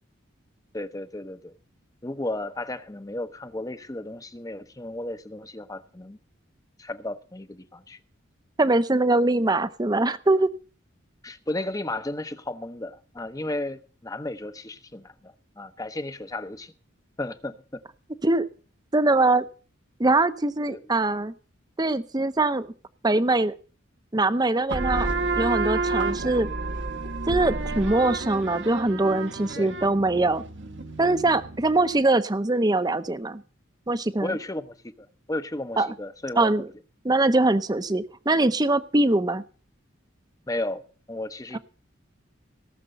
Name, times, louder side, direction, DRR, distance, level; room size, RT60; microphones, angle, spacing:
voice 1, 0.7-1.5 2.0-6.2 6.8-8.0 11.2-16.7 17.2-17.5 20.7-20.8 29.6-29.7 34.2-36.5 40.5-40.8 41.1-41.6, left 1 dB, 15° left, 0.7 m, -34 dB
voice 2, 8.6-10.5 18.2-18.5 18.9-19.4 20.0-21.3 21.8-22.7 23.0-23.5 24.1-25.1 25.4-26.5 27.3-30.4 31.0-33.4 33.9-34.3 35.8-35.9 36.4-36.7 37.0-39.4 41.5-41.6, right 2 dB, 20° right, 0.6 m, -22 dB
sound 1, 24.7-32.0, right 3 dB, 60° right, 1.2 m, -30 dB
17.5 x 6.7 x 6.5 m
head